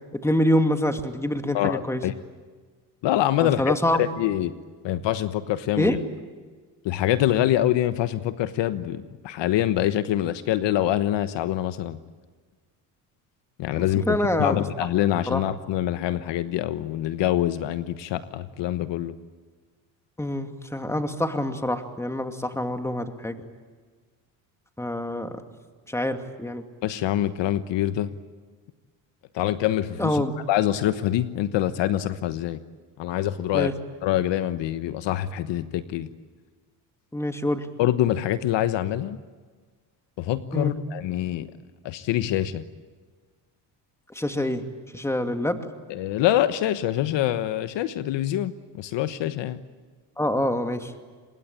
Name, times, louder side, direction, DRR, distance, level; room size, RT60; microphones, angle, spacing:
voice 1, 0.2-2.0 3.4-4.1 5.8-6.0 13.8-14.6 15.3-15.4 20.2-23.4 24.8-25.4 25.9-26.6 30.0-30.3 33.5-33.7 37.1-37.7 40.5-40.7 44.1-44.6 44.9-45.6 50.2-50.9, left 1 dB, 5° left, 6 dB, 2.5 m, -26 dB
voice 2, 1.5-2.1 3.0-4.5 4.8-6.0 6.8-12.0 13.6-14.0 14.4-19.1 26.8-28.1 29.3-30.2 30.5-32.6 33.0-33.7 34.0-36.1 37.8-39.2 40.2-41.5 41.8-42.6 45.9-48.5 48.8-49.6, left 12 dB, 65° left, 12 dB, 1.2 m, -25 dB
26.0 x 22.0 x 8.9 m, 1.5 s
supercardioid pair, 85°, 47 cm